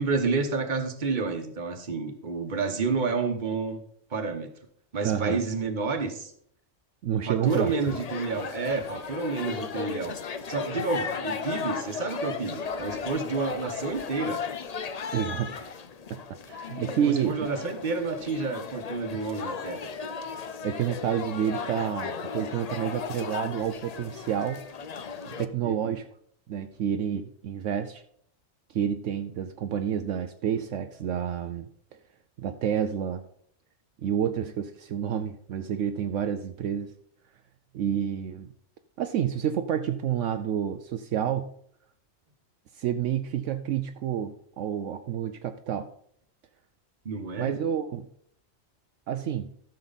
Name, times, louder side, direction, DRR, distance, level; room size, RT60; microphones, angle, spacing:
voice 1, 0.0-3.8 4.1-4.5 4.9-6.3 7.3-10.2 10.5-14.4 17.0-19.9 25.6-26.0 47.0-47.6, right 4 dB, 40° right, 7 dB, 1.2 m, -30 dB
voice 2, 5.0-5.4 7.0-7.7 15.1-15.7 16.1-16.2 16.5-17.5 20.6-24.6 25.2-26.0 26.5-28.0 28.7-32.0 32.4-33.2 34.0-36.9 37.7-38.5 39.0-41.5 42.7-45.9 47.4-48.1 49.1-49.5, right 9 dB, 75° right, 8 dB, 0.9 m, -29 dB
sound 1, 7.5-25.5, left 5 dB, 45° left, 0.5 m, -36 dB
13.5 x 6.6 x 4.1 m, 0.66 s
omnidirectional pair, 1.3 m